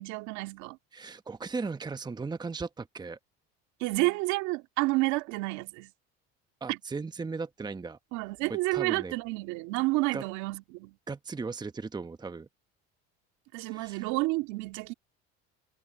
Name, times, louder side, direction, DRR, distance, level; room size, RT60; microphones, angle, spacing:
voice 1, 0.0-0.8 3.8-5.9 6.7-6.8 8.1-10.9 13.5-14.9, right 22 dB, 75° right, 2.3 m, -30 dB
voice 2, 0.9-3.2 6.6-8.0 8.5-9.1 10.1-10.2 11.1-12.5 13.7-14.1, right 4 dB, 15° right, 0.9 m, -37 dB
supercardioid pair, 95°, 29 cm